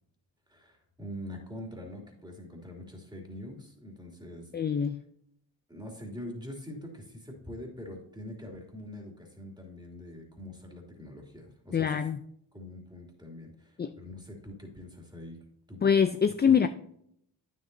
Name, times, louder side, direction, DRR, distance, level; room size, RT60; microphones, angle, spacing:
voice 1, 0.5-4.5 5.7-12.0 12.5-15.4 15.7-15.8 16.5-16.7, left 1 dB, 10° right, 2.7 m, -44 dB
voice 2, 4.5-5.0 11.7-12.2 13.8-13.9 15.8-16.7, left 7 dB, 25° left, 0.3 m, -24 dB
9.1 x 7.6 x 2.7 m
cardioid pair, 50°, 47 cm